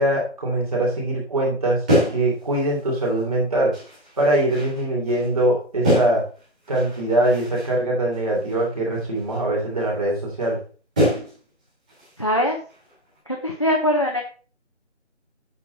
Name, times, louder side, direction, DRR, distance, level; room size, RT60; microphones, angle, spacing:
voice 1, 0.0-1.8 2.1-3.7 4.2-6.2 6.7-10.6, right 1 dB, 30° right, -3 dB, 3.2 m, -22 dB
sound 1, 1.9-3.3 3.7-5.5 5.8-7.8 8.1-9.4 9.8-9.9 10.4-10.5 11.0-11.5 11.9-12.3 12.7-13.2, equal, 5° right, 2.0 m, -27 dB
voice 2, 12.2-12.6 13.4-14.2, left 1 dB, 25° left, 2 dB, 0.8 m, -21 dB
8.4 x 8.0 x 4.1 m, 0.39 s
figure-of-eight pair, 175°, 36 cm